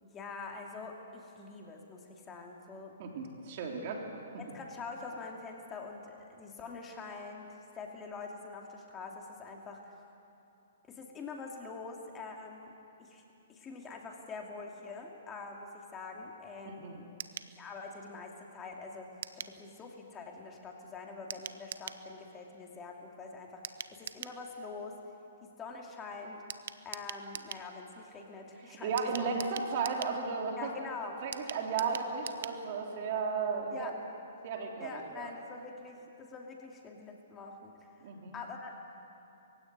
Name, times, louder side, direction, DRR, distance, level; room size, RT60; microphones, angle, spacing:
voice 1, 0.0-2.9 4.4-9.9 10.9-12.7 13.0-13.2 13.5-17.1 17.6-19.1 19.4-25.0 25.4-26.4 26.8-29.5 30.6-31.2 33.7-33.9 34.8-37.7 38.3-38.7, left 4 dB, 20° left, 1 dB, 2.5 m, -45 dB
voice 2, 3.0-4.1 4.3-4.4 16.6-17.0 28.7-30.7 31.2-33.9 34.4-35.3 38.0-38.4, right 5 dB, 50° right, 1 dB, 3.5 m, -34 dB
sound 1, 17.2-17.5 19.2-19.6 21.3-22.0 23.6-24.4 26.5-27.7 29.0-30.2 31.3-32.6 32.9-33.0 33.2-33.3, right 8 dB, 65° right, 0.8 m, -43 dB
22.0 x 16.0 x 9.5 m, 2.8 s
hypercardioid pair, 135°, 0 cm